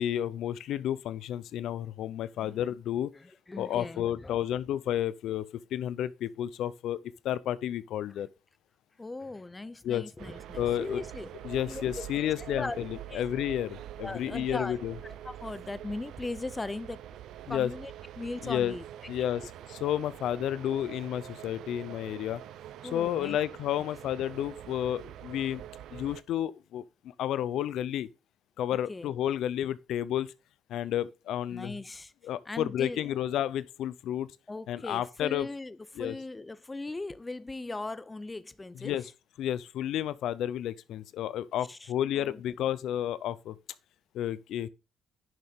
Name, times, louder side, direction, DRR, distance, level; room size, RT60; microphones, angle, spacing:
voice 1, 0.0-3.1 3.6-5.4 5.7-7.0 7.2-8.3 9.8-10.0 10.6-11.0 11.4-14.9 17.5-17.7 18.4-18.8 19.1-22.4 22.9-25.6 25.9-28.1 28.6-30.3 30.7-31.7 32.2-34.3 34.7-35.5 36.0-36.1 38.8-39.0 39.4-43.6 44.1-44.7, left 11 dB, 80° left, 0.6 m, -31 dB
voice 2, 3.1-4.4 9.0-11.3 11.7-11.8 12.2-12.8 13.1-13.3 14.0-14.8 15.0-17.0 17.5-18.8 22.8-23.4 28.9-29.1 31.5-32.1 32.5-33.1 34.5-39.0 41.7-42.4, left 2 dB, 20° left, 0.6 m, -39 dB
sound 1, 10.2-26.2, right 12 dB, 80° right, 0.6 m, -45 dB
10.5 x 6.5 x 3.6 m
cardioid pair, 95°, 0 cm